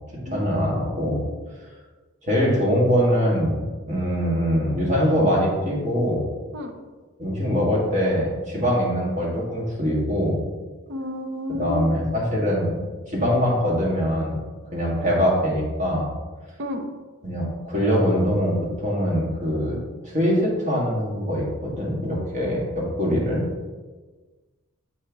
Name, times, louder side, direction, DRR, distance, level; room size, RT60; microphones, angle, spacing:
voice 1, 0.3-1.2 2.2-3.6 3.9-6.2 7.2-10.4 11.6-12.8 13.1-14.4 14.7-16.1 17.2-19.8 20.0-23.4, equal, 35° right, -4 dB, 1.6 m, -23 dB
voice 2, 0.9-1.4 6.5-6.7 10.9-11.9 16.6-16.9, left 2 dB, 50° right, 5 dB, 0.7 m, -32 dB
7.5 x 4.4 x 3.4 m, 1.3 s
head